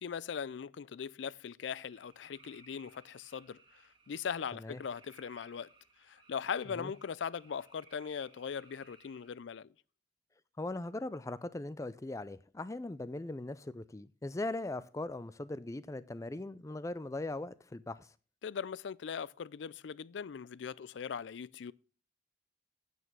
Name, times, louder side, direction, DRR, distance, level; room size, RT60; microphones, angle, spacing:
voice 1, 0.0-3.6 4.1-5.7 6.1-9.7 18.4-21.7, left 7 dB, 85° left, 0.4 m, -40 dB
sound 1, 1.9-9.4, right 4 dB, 25° right, 1.7 m, -63 dB
voice 2, 10.6-18.1, left 2 dB, 15° left, 0.4 m, -40 dB
9.4 x 8.1 x 6.0 m
head